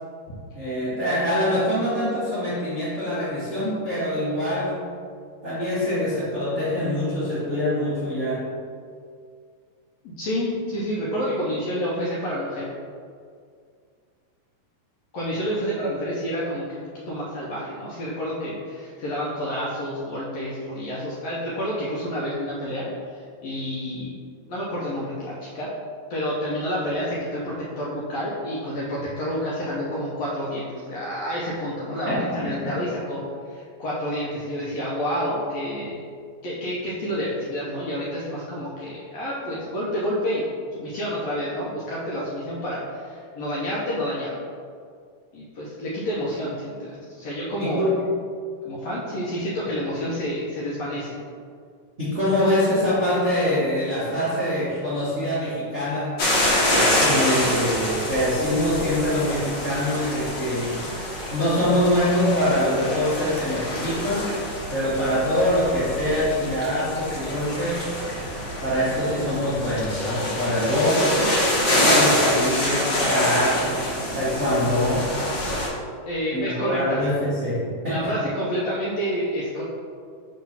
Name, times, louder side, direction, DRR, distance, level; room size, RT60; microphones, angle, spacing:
voice 1, 0.5-4.8 5.4-8.4 32.0-32.8 47.6-47.9 52.0-56.2 57.0-60.8 61.3-64.3 64.7-68.0 68.6-71.1 71.8-73.9 74.1-75.1 76.3-78.1, left 1 dB, 60° right, -11 dB, 0.7 m, -24 dB
voice 2, 10.0-12.6 15.1-24.1 24.5-25.7 26.1-33.2 33.5-36.0 36.4-40.4 40.7-44.4 45.3-47.9 48.6-51.2 76.1-77.0 77.9-79.6, equal, 75° left, -6 dB, 1.6 m, -29 dB
sound 1, 56.2-75.7, left 1 dB, 55° left, 1.2 m, -26 dB
5.9 x 3.2 x 5.6 m, 2.2 s
omnidirectional pair, 3.9 m